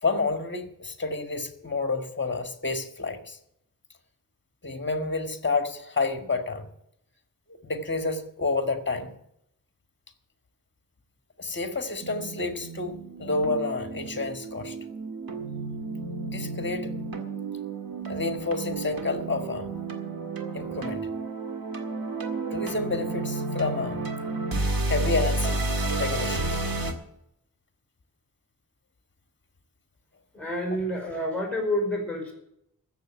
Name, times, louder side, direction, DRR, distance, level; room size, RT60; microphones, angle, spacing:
voice 1, 0.0-3.4 4.6-6.7 7.6-9.1 11.4-14.8 16.3-16.9 18.1-19.7 20.5-21.1 22.5-24.1 24.9-25.6 26.0-26.6, left 3 dB, 35° left, 7 dB, 1.8 m, -29 dB
sound 1, 12.0-26.9, right 2 dB, 85° right, 1.9 m, -31 dB
voice 2, 30.3-32.3, left 1 dB, 5° left, 1 dB, 5.4 m, -28 dB
15.0 x 6.9 x 9.0 m, 0.78 s
wide cardioid pair, 110°, 34 cm